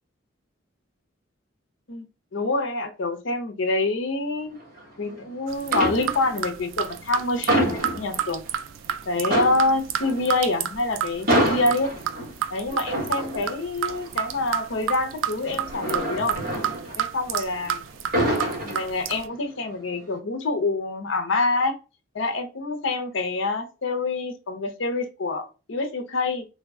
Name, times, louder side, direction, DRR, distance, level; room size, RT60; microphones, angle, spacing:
voice 1, 2.3-4.5 5.0-8.4 9.1-11.9 12.5-16.4 17.0-17.8 18.6-21.8 22.1-26.5, left 2 dB, 70° left, 6 dB, 0.7 m, -26 dB
sound 1, 4.6-5.3 5.6-6.5 6.8-8.6 8.9-9.0 9.2-17.6 17.9-19.4 19.7-20.0, right 1 dB, 45° right, 1.4 m, -28 dB
sound 2, 5.5-19.3, right 10 dB, 75° right, 0.3 m, -31 dB
3.3 x 2.1 x 3.4 m, 0.32 s
head